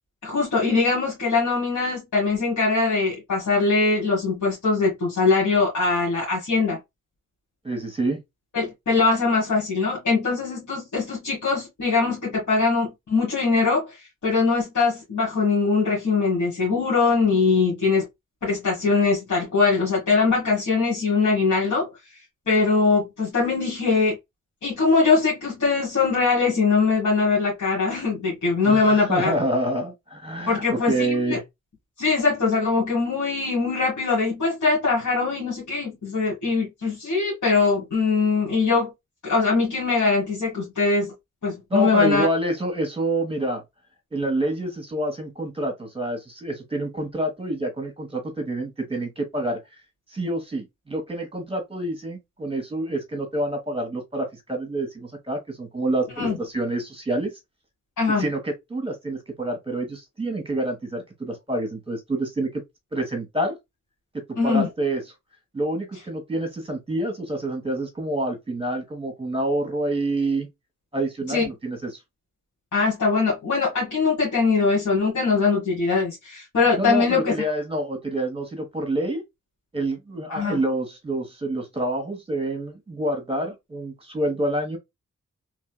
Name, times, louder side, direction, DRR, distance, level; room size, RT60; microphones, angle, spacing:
voice 1, 0.2-6.8 8.5-18.1 18.4-21.9 22.5-24.2 24.6-29.4 30.5-31.4 32.0-38.9 39.2-41.1 41.4-42.3 56.2-56.4 58.0-58.2 64.4-64.7 71.3-71.5 72.7-77.3 80.3-80.6, left 4 dB, 65° left, 1.6 m, -22 dB
voice 2, 7.6-8.2 28.6-31.4 41.7-43.6 44.1-49.8 50.1-57.3 58.2-62.6 62.9-63.6 64.4-65.0 65.5-70.5 70.9-71.9 76.8-79.2 79.7-84.8, right 1 dB, 15° right, 1.4 m, -27 dB
3.2 x 2.8 x 2.2 m
cardioid pair, 60°, 31 cm